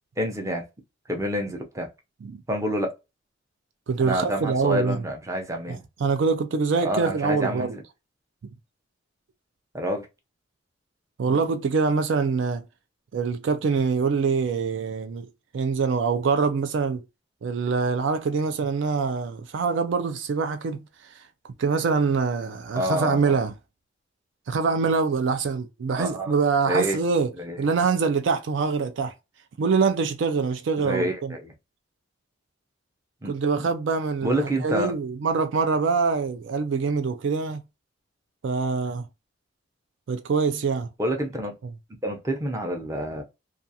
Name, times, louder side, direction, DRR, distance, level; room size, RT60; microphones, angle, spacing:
voice 1, 0.2-0.6 1.1-1.9 2.5-2.9 4.0-5.8 6.8-7.8 9.7-10.1 22.8-23.4 26.0-26.3 26.7-27.0 27.4-27.6 30.8-31.5 33.2-33.7 34.2-35.0 41.0-41.5 42.0-43.2, equal, 15° right, 0.6 m, -28 dB
voice 2, 3.9-5.0 5.7-7.8 11.2-12.6 13.1-15.3 15.5-17.0 17.4-20.8 21.6-23.5 24.5-27.3 27.6-29.1 29.6-31.3 33.2-37.6 38.4-39.0 40.1-40.9, right 5 dB, 65° right, 0.4 m, -24 dB
2.3 x 2.3 x 2.7 m
head